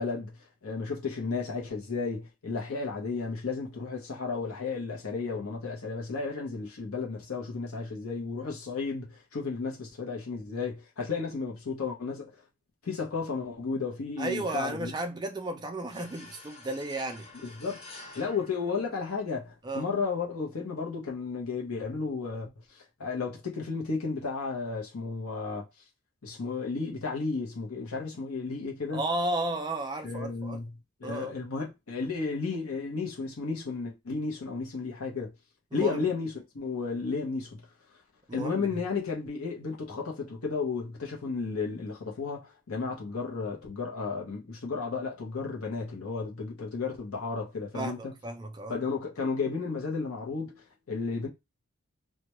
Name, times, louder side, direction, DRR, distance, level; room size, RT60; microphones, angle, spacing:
voice 1, 0.0-12.4 12.8-14.9 17.4-17.8 18.1-25.7 26.2-29.0 30.0-30.7 31.0-35.3 35.7-37.7 38.3-48.1 48.7-51.3, left 4 dB, 90° left, 0.7 m, -33 dB
voice 2, 14.2-17.3 19.6-19.9 28.9-30.6 31.0-31.3 35.7-36.0 38.3-38.8 47.7-48.8, right 2 dB, 20° right, 0.3 m, -33 dB
sound 1, 15.9-19.5, left 2 dB, 30° left, 0.6 m, -49 dB
2.2 x 2.2 x 2.9 m
head